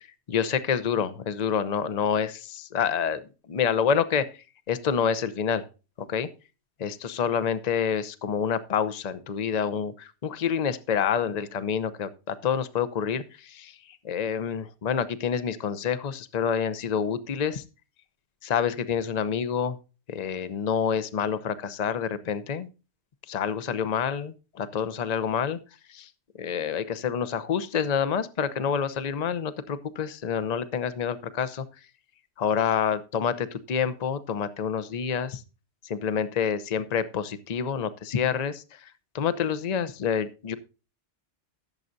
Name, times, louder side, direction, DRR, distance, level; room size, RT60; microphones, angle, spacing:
voice 1, 0.0-3.2 3.5-4.3 4.7-5.7 6.0-6.3 6.8-13.8 14.0-17.6 18.4-19.8 20.1-22.7 23.3-25.6 25.9-26.1 26.4-31.6 32.4-35.4 35.8-40.6, left 7 dB, 40° left, 14 dB, 0.8 m, -28 dB
16.0 x 7.5 x 2.7 m, 0.32 s
omnidirectional pair, 1.2 m